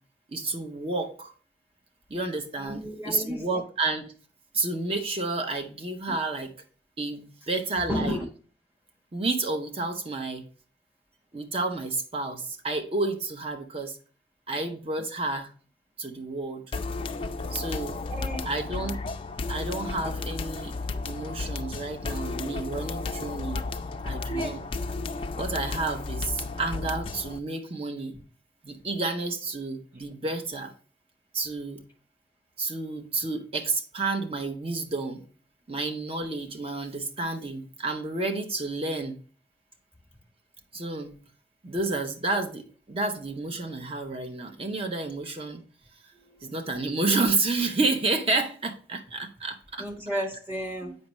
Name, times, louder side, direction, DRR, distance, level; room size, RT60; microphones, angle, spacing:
voice 1, 0.3-1.3 2.1-4.1 4.5-6.5 7.0-8.2 9.1-10.4 11.3-14.0 14.5-15.5 16.0-16.6 17.5-18.0 18.4-19.0 19.5-20.7 21.0-23.6 24.0-24.6 25.4-28.2 28.6-30.7 31.3-31.8 32.6-35.3 35.7-39.2 40.7-41.2 41.6-45.6 46.4-49.8 50.8-50.9, right 3 dB, 35° right, 0.8 m, -30 dB
voice 2, 2.6-3.5 7.9-8.2 15.0-15.1 18.1-18.5 24.3-24.6 46.1-46.6 49.8-51.0, equal, 10° right, 1.3 m, -33 dB
sound 1, 16.7-27.4, left 3 dB, 30° left, 0.3 m, -33 dB
7.5 x 5.3 x 3.0 m
head